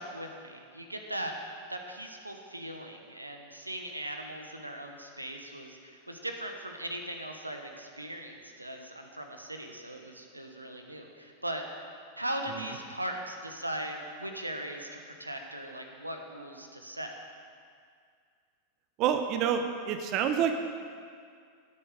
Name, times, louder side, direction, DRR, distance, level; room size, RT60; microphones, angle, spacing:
voice 1, 0.0-1.3 1.7-11.6 12.1-17.2, right 1 dB, 85° right, 4 dB, 1.2 m, -39 dB
voice 2, 19.0-20.5, right 8 dB, 40° right, 7 dB, 0.8 m, -27 dB
17.0 x 8.7 x 5.0 m, 2.1 s
figure-of-eight pair, 90°, 0 cm